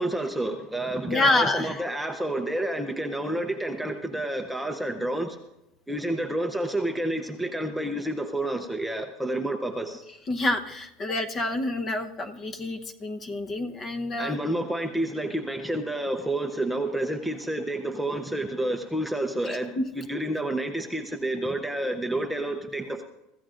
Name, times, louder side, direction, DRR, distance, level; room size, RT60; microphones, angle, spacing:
voice 1, 0.0-5.4 5.9-10.0 14.2-23.0, right 1 dB, ahead, 4 dB, 0.7 m, -29 dB
voice 2, 1.1-1.8 10.3-14.4 19.4-19.9, left 2 dB, 25° left, 6 dB, 0.9 m, -27 dB
24.5 x 15.0 x 2.5 m, 0.92 s
cardioid pair, 170°, 0 cm